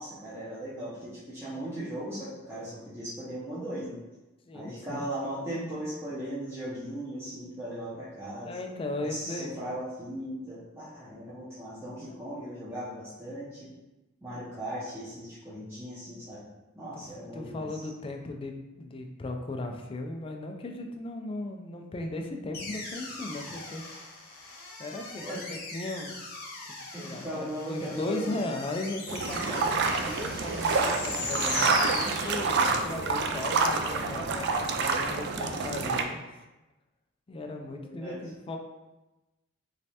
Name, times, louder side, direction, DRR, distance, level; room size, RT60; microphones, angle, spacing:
voice 1, 0.0-4.0 4.5-8.6 9.0-13.7 14.2-16.5 16.7-17.9 25.2-25.4 26.9-28.4 37.7-38.2, right 1 dB, 10° right, -10 dB, 0.6 m, -38 dB
voice 2, 4.5-5.0 8.4-9.5 12.0-12.1 16.9-17.0 17.3-23.8 24.8-26.2 27.0-36.2 37.3-38.6, left 2 dB, 25° left, 3 dB, 0.3 m, -37 dB
sound 1, 22.5-32.8, left 3 dB, 50° left, 0.7 m, -39 dB
sound 2, 29.1-36.0, right 4 dB, 55° right, 0.3 m, -28 dB
3.2 x 3.2 x 2.8 m, 1.1 s
head